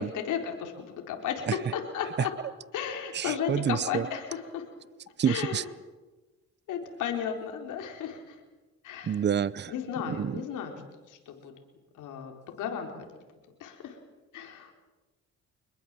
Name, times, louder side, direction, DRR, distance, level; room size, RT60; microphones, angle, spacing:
voice 1, 0.0-2.3 2.7-4.6 5.2-5.7 6.7-8.4 8.8-9.3 9.7-10.8 11.1-11.5 11.9-13.1 13.6-14.0 14.3-14.7, left 8 dB, 85° left, 3 dB, 4.2 m, -34 dB
voice 2, 3.1-4.1 5.2-5.6 9.0-9.7 10.1-10.3, right 8 dB, 35° right, 20 dB, 0.7 m, -28 dB
25.5 x 21.5 x 7.6 m, 1.2 s
cardioid pair, 90°, 30 cm